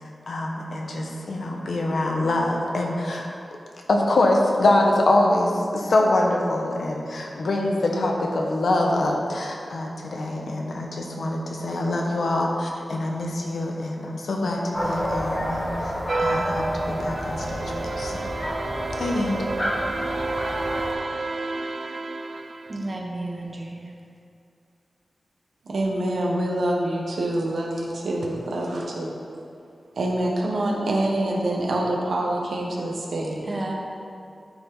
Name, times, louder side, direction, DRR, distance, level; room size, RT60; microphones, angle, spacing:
voice 1, 0.3-3.3 3.9-15.9 16.2-18.3 19.0-19.4, left 1 dB, 75° left, 0 dB, 1.2 m, -24 dB
sound 1, 14.7-20.9, equal, 15° left, 1.4 m, -29 dB
sound 2, 16.1-23.0, right 3 dB, 55° right, 0.3 m, -31 dB
voice 2, 22.7-23.9 33.5-33.8, right 2 dB, 35° right, 0 dB, 1.1 m, -32 dB
voice 3, 25.7-29.2 30.0-33.5, right 1 dB, 85° right, -2 dB, 1.4 m, -26 dB
13.5 x 5.2 x 4.0 m, 2.5 s
wide cardioid pair, 120°, 0 cm